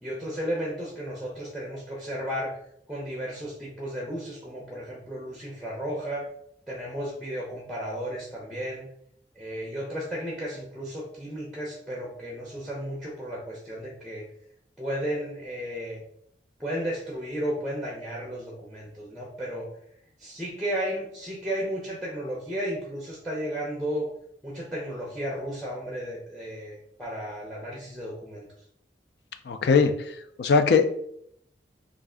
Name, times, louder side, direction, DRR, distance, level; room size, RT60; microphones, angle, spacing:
voice 1, 0.0-2.6 2.9-6.3 6.7-8.9 9.3-14.3 14.8-16.0 16.6-19.7 20.2-24.1 24.4-28.5, equal, ahead, -3 dB, 0.5 m, -34 dB
voice 2, 29.5-30.0 30.4-30.8, left 5 dB, 70° left, 8 dB, 0.4 m, -20 dB
3.3 x 2.4 x 3.6 m, 0.70 s
head